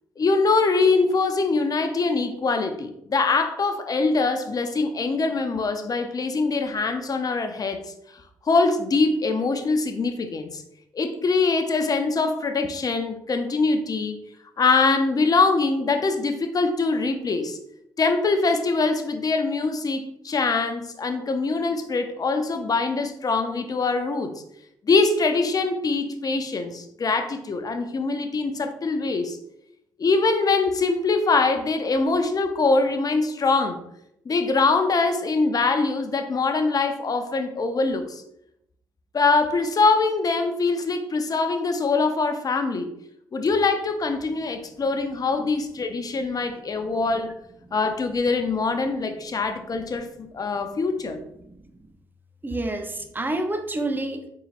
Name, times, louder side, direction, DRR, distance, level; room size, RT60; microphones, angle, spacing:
voice 1, 0.2-7.8 8.5-10.6 10.9-14.2 14.6-17.6 18.0-24.4 24.8-29.4 30.0-33.8 34.3-38.2 39.1-42.9 43.3-47.3 47.7-50.1 50.3-51.2, left 3 dB, 40° left, 7 dB, 0.6 m, -23 dB
voice 2, 51.4-51.9 52.4-54.3, right 2 dB, 20° right, 7 dB, 0.7 m, -29 dB
4.0 x 3.9 x 2.5 m, 0.77 s
hypercardioid pair, 45°, 9 cm